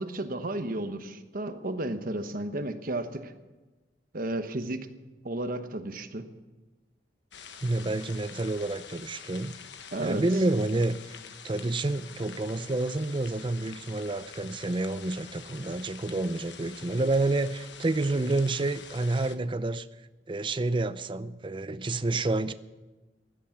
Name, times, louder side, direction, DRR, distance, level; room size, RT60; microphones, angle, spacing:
voice 1, 0.0-3.3 4.1-4.9 5.2-6.3 9.9-10.2, right 1 dB, 55° right, 9 dB, 1.1 m, -33 dB
sound 1, 7.3-19.4, left 7 dB, 90° left, 1.2 m, -47 dB
voice 2, 7.6-9.5 10.0-11.2 11.4-19.9 20.3-22.5, right 2 dB, 30° right, 13 dB, 0.6 m, -29 dB
16.0 x 11.5 x 7.2 m, 1.2 s
head